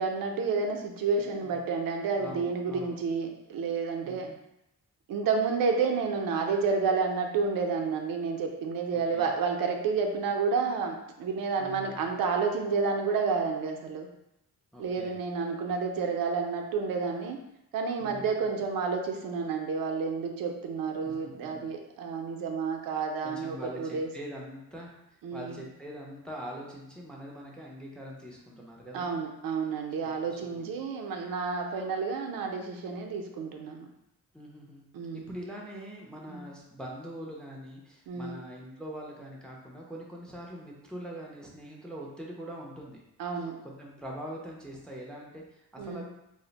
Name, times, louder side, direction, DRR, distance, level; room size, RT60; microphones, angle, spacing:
voice 1, 0.0-4.3 5.1-14.1 14.8-17.4 17.7-24.1 25.2-25.6 28.9-33.9 34.9-35.3 36.3-36.4 38.1-38.4 43.2-43.6 45.8-46.0, right 5 dB, 85° right, 3 dB, 0.5 m, -30 dB
voice 2, 1.2-1.6 2.2-3.0 4.0-4.4 8.9-9.3 11.6-12.0 14.7-15.2 18.0-18.3 21.1-21.2 21.4-21.7 23.2-29.1 30.2-30.7 34.3-34.8 35.1-43.0 43.3-46.0, equal, 5° left, -2 dB, 0.3 m, -43 dB
2.4 x 2.0 x 3.8 m, 0.87 s
wide cardioid pair, 165°, 33 cm